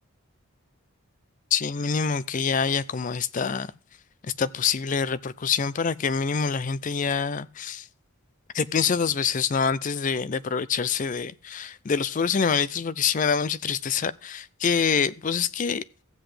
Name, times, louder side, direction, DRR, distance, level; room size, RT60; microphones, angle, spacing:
voice 1, 1.5-3.7 4.2-7.9 8.5-15.8, left 6 dB, 35° left, 0.4 m, -26 dB
15.0 x 7.9 x 3.3 m
head